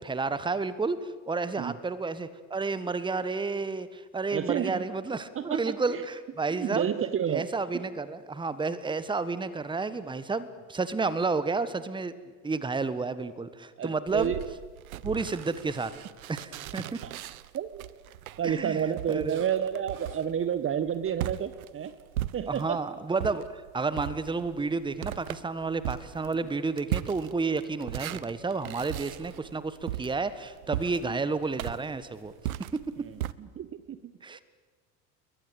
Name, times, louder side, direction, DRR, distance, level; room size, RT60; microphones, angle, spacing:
voice 1, 0.0-6.9 7.3-12.1 12.4-14.3 15.0-15.9 16.3-17.0 18.4-18.8 19.1-19.4 22.5-32.3 32.7-33.1 34.2-34.4, right 4 dB, 10° right, 15 dB, 1.5 m, -31 dB
voice 2, 4.3-4.9 5.3-6.0 6.5-7.5 13.8-14.4 16.7-17.1 17.5-17.9 18.4-21.9 22.3-22.8 31.0-31.2 33.0-34.4, right 9 dB, 30° right, 13 dB, 1.4 m, -31 dB
sound 1, 14.1-22.8 23.2-33.3, right 14 dB, 65° right, 1.0 m, -38 dB
29.0 x 22.0 x 8.3 m, 1.4 s
figure-of-eight pair, 70°, 45 cm